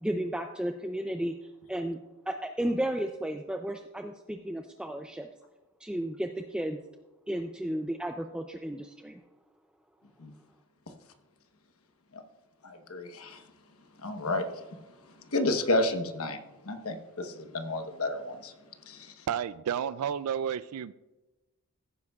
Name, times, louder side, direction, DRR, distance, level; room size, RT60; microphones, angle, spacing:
voice 1, 0.0-2.0 2.3-5.3 5.8-6.8 7.3-9.2, right 1 dB, 5° right, 0.3 m, -33 dB
voice 2, 12.6-13.4 14.0-14.5 15.3-16.4 16.6-18.5 18.9-19.1, left 2 dB, 70° left, 1.1 m, -31 dB
voice 3, 19.3-20.9, right 8 dB, 80° right, 0.3 m, -31 dB
16.0 x 9.7 x 2.4 m
head